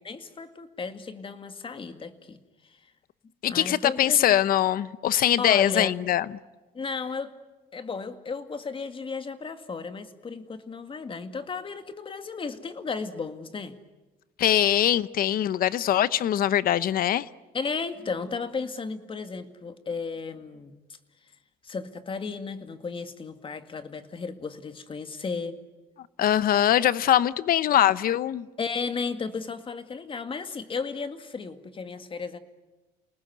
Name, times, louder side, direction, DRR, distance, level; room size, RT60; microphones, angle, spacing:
voice 1, 0.0-2.4 3.5-4.4 5.4-6.0 6.7-7.3 7.7-13.8 17.5-20.8 21.6-25.6 28.6-32.4, left 4 dB, 30° left, 2.1 m, -34 dB
voice 2, 3.4-6.2 14.4-17.3 26.2-28.5, left 11 dB, 60° left, 0.9 m, -22 dB
29.0 x 19.5 x 9.5 m
cardioid pair, 110°, 17 cm